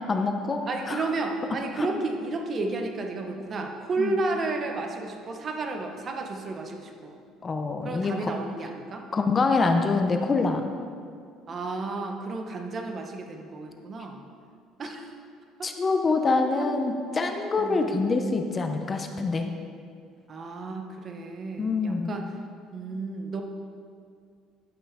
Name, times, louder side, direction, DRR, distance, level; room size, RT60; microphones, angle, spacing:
voice 1, 0.1-1.1 1.7-1.9 4.0-4.2 7.4-8.3 9.1-10.6 15.6-19.5 21.6-22.1, left 3 dB, 25° left, 5 dB, 0.6 m, -25 dB
voice 2, 0.7-7.1 7.8-9.1 11.5-14.2 14.8-15.1 15.6-15.7 17.6-17.8 20.3-22.3 22.7-23.4, right 3 dB, 35° right, 3 dB, 0.9 m, -32 dB
12.5 x 5.6 x 3.6 m, 2.2 s
cardioid pair, 125°, 0 cm